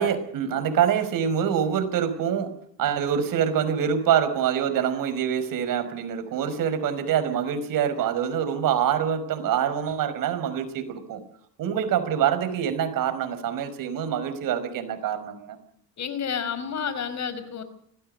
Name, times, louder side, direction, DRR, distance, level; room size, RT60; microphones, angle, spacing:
voice 1, 0.0-2.5 2.8-11.2 11.6-15.6, right 8 dB, 65° right, 9 dB, 5.3 m, -25 dB
voice 2, 16.0-17.6, left 7 dB, 50° left, 13 dB, 5.1 m, -30 dB
25.5 x 18.5 x 6.6 m, 0.65 s
cardioid pair, 115°, 35 cm